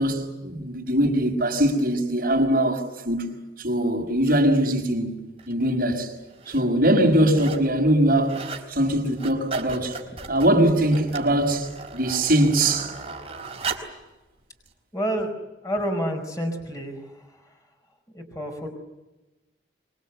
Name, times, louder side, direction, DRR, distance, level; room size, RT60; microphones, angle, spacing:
voice 1, 0.0-3.3 3.6-6.1 6.5-10.0 10.3-12.9, right 1 dB, 50° right, 5.6 m, -22 dB
sound 1, 5.4-5.5 6.2-6.6 7.0-7.7 8.0-8.7 9.0-14.0 14.7-14.8, right 4 dB, 30° right, 4.2 m, -37 dB
voice 2, 14.9-15.3 15.6-17.1 18.1-18.7, equal, 20° left, 4.9 m, -29 dB
25.5 x 23.5 x 8.3 m
head